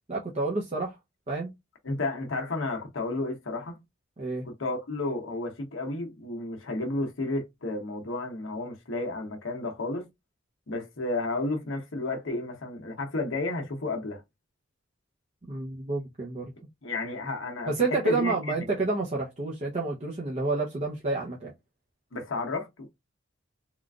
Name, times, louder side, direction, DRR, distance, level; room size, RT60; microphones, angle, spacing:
voice 1, 0.1-1.0 1.3-1.5 4.2-4.5 15.5-16.5 17.7-21.5, right 3 dB, 35° right, 0.7 m, -29 dB
voice 2, 1.8-3.8 4.4-10.1 10.7-14.2 16.8-17.7 18.0-18.5 22.1-22.9, left 2 dB, 80° left, 0.9 m, -32 dB
3.7 x 2.4 x 2.3 m
head